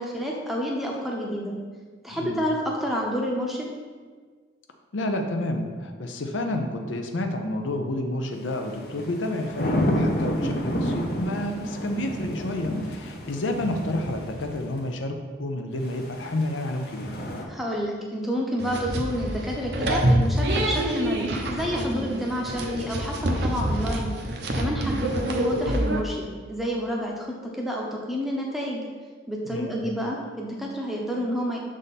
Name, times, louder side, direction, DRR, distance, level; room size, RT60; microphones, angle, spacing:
voice 1, 0.0-1.5 2.0-3.7 17.5-24.1 24.5-28.8 29.3-31.6, equal, ahead, -2 dB, 0.7 m, -29 dB
voice 2, 2.1-2.4 4.9-17.1 29.5-29.8, left 1 dB, 85° left, 5 dB, 0.6 m, -30 dB
sound 1, 8.5-14.8 15.8-17.4, equal, 55° left, 0.7 m, -30 dB
sound 2, 18.6-26.0, right 1 dB, 60° right, 0.7 m, -26 dB
6.5 x 3.7 x 4.1 m, 1.5 s
head